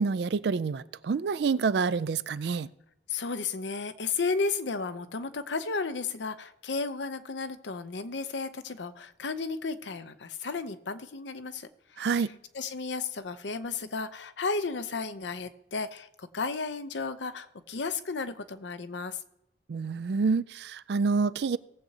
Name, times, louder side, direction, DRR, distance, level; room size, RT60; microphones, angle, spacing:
voice 1, 0.0-2.7 12.0-12.3 19.7-21.6, right 5 dB, 60° right, 17 dB, 0.4 m, -27 dB
voice 2, 3.1-12.2 12.5-19.2, left 4 dB, 75° left, 11 dB, 0.7 m, -33 dB
18.5 x 7.8 x 2.8 m, 0.81 s
head